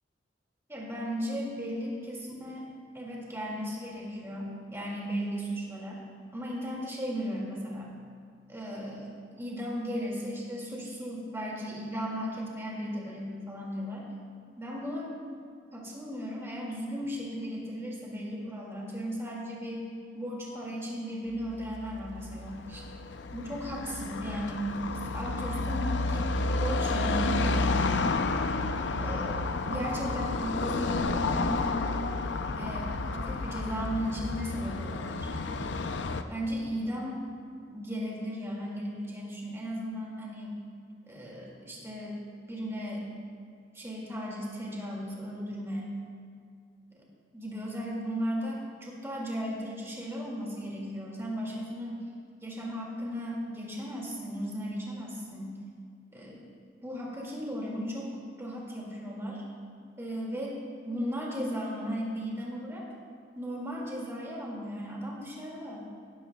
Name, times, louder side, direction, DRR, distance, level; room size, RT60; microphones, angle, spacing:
voice 1, 0.7-2.7 2.9-6.0 6.3-7.9 8.5-9.1 9.4-14.1 14.6-15.1 15.7-19.9 20.1-22.8 23.3-24.8 25.1-27.8 29.0-32.1 32.5-35.6 36.3-37.2 37.6-40.6 41.1-42.2 42.5-43.1 43.7-46.0 47.0-47.1 47.3-52.0 52.4-55.6 56.1-56.4 56.8-59.4 60.0-62.9 63.4-65.9, equal, 15° right, -3 dB, 2.3 m, -36 dB
Car passing by / Traffic noise roadway noise, 21.5-36.2, left 3 dB, 85° left, 0.6 m, -31 dB
16.5 x 12.5 x 2.3 m, 2.3 s
head